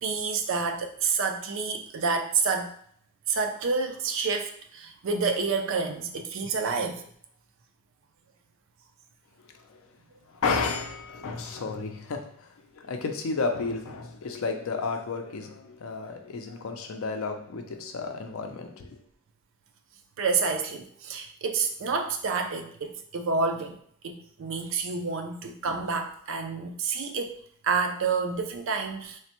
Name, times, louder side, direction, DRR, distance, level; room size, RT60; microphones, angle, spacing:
voice 1, 0.0-2.7 3.3-7.1 20.2-29.2, right 4 dB, 60° right, 5 dB, 0.4 m, -29 dB
voice 2, 10.3-19.0, left 4 dB, 70° left, 5 dB, 0.4 m, -32 dB
3.2 x 2.1 x 2.9 m, 0.62 s
head